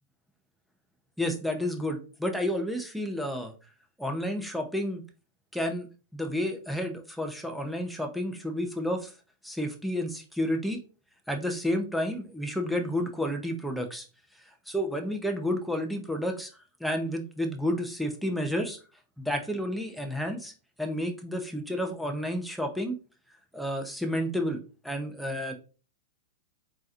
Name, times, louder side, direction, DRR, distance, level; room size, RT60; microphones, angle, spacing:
voice 1, 1.2-3.5 4.0-5.0 5.5-5.9 6.1-9.1 9.4-10.8 11.3-14.0 14.7-16.5 16.8-18.8 19.2-20.5 20.8-23.0 23.5-25.5, equal, ahead, 4 dB, 0.9 m, -31 dB
4.3 x 3.9 x 2.6 m, 0.34 s
hypercardioid pair, 125°, 0 cm